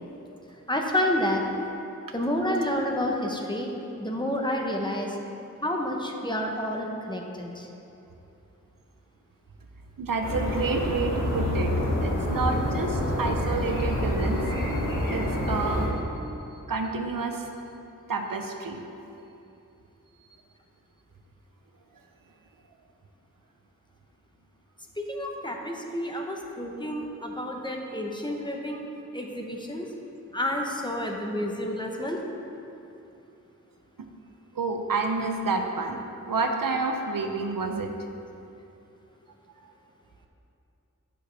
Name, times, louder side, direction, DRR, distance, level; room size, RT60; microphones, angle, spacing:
voice 1, 0.7-1.4 2.1-3.7 4.0-5.2 5.6-7.7 25.0-28.8 29.1-29.9 30.3-32.2, left 1 dB, 15° left, 0 dB, 0.9 m, -29 dB
voice 2, 10.0-11.7 12.0-14.4 15.1-15.9 16.7-17.5 18.1-18.8 34.0-34.1 34.5-37.9, right 4 dB, 85° right, 4 dB, 0.7 m, -29 dB
sound 1, 10.2-15.9, left 1 dB, 75° left, 1.4 m, -27 dB
8.9 x 6.5 x 3.3 m, 2.8 s
wide cardioid pair, 55°, 33 cm